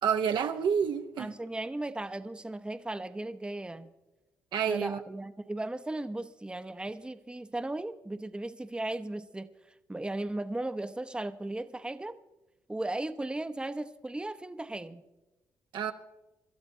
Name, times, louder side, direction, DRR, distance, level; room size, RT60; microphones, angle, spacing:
voice 1, 0.0-1.3 4.5-5.0 15.7-15.9, right 7 dB, 70° right, 0.8 m, -28 dB
voice 2, 1.2-3.9 4.7-9.5 9.9-12.2 12.7-15.0, right 2 dB, 10° right, 0.7 m, -36 dB
26.5 x 12.5 x 2.7 m
supercardioid pair, 55°, 8 cm